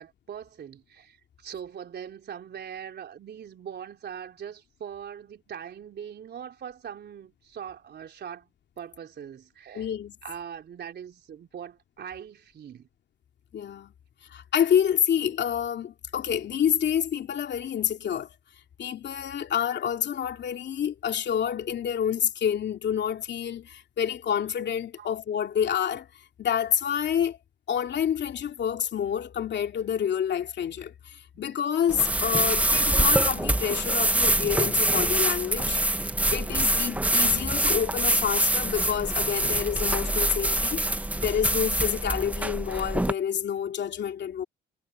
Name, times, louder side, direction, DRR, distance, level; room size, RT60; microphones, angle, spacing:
voice 1, 0.0-8.5 8.8-9.9 10.2-12.9 25.0-25.1 31.3-31.4, right 8 dB, 60° right, 3.8 m, -41 dB
voice 2, 9.7-10.1 13.5-13.9 14.3-18.3 18.8-26.1 26.4-27.4 27.7-35.8 36.3-44.4, left 8 dB, 60° left, 2.5 m, -28 dB
sound 1, 31.9-43.1, right 1 dB, 5° right, 0.9 m, -25 dB
cardioid pair, 90°, 20 cm